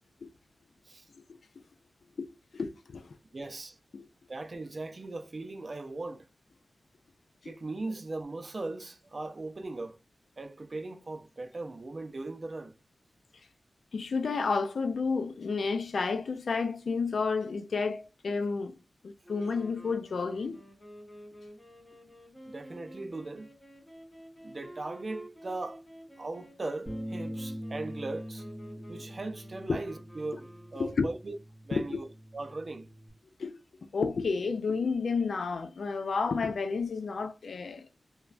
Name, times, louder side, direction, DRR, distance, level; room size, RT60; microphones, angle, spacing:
voice 1, 2.5-3.2 3.9-4.1 13.9-18.7 19.0-20.6 29.7-29.8 30.8-31.1 31.7-32.0 33.4-33.6 33.9-37.9, left 4 dB, 80° left, 0.4 m, -31 dB
voice 2, 3.3-3.8 4.3-6.3 7.4-10.0 10.4-12.7 22.5-23.5 24.4-25.8 26.2-28.5 28.9-31.4 31.7-32.1 32.3-32.9, right 2 dB, 45° right, 0.4 m, -39 dB
sound 1, 19.2-31.1, equal, 25° left, 0.8 m, -51 dB
Bass guitar, 26.9-33.1, equal, ahead, 1.3 m, -43 dB
3.1 x 2.2 x 2.4 m
wide cardioid pair, 100°, 0 cm